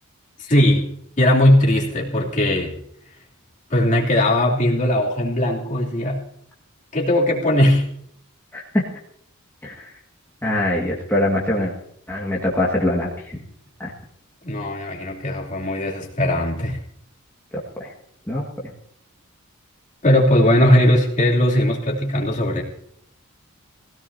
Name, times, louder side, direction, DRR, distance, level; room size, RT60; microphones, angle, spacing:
voice 1, 0.4-0.9 1.2-2.7 3.7-6.2 6.9-7.8 14.4-16.8 20.0-22.6, left 1 dB, 35° left, -3 dB, 3.0 m, -18 dB
voice 2, 10.4-11.7 12.1-13.1 13.8-13.9 17.8-17.9 18.3-18.4, left 1 dB, 10° left, -5 dB, 1.9 m, -22 dB
21.0 x 17.0 x 2.8 m, 0.69 s
head